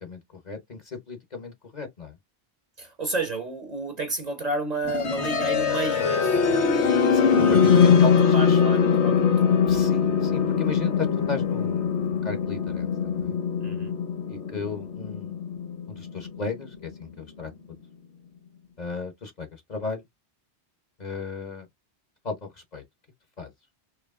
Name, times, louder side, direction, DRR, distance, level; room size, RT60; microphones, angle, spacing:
voice 1, 0.4-2.1 7.1-8.6 9.7-13.3 14.3-15.3 15.9-17.5 18.8-20.0 21.0-21.7 22.2-22.8 23.4-23.5, left 4 dB, 40° left, 1.0 m, -35 dB
voice 2, 2.8-6.4 7.9-9.6 13.6-14.0, right 2 dB, 40° right, 1.0 m, -31 dB
sound 1, 4.8-16.7, left 6 dB, 80° left, 1.2 m, -22 dB
4.6 x 2.9 x 2.4 m
omnidirectional pair, 1.1 m